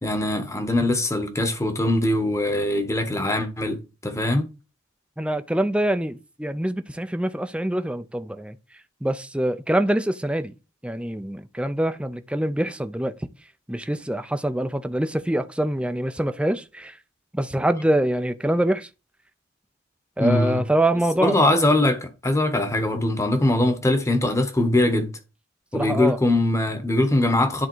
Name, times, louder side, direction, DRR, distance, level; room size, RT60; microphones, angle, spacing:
voice 1, 0.0-4.5 20.2-20.6 21.2-25.1 25.7-27.7, left 1 dB, 15° left, 1.2 m, -22 dB
voice 2, 5.2-8.6 9.0-10.5 10.8-13.1 13.7-17.0 17.3-18.9 20.2-21.6 25.7-26.2, right 1 dB, 5° right, 0.5 m, -25 dB
10.5 x 3.7 x 4.6 m
head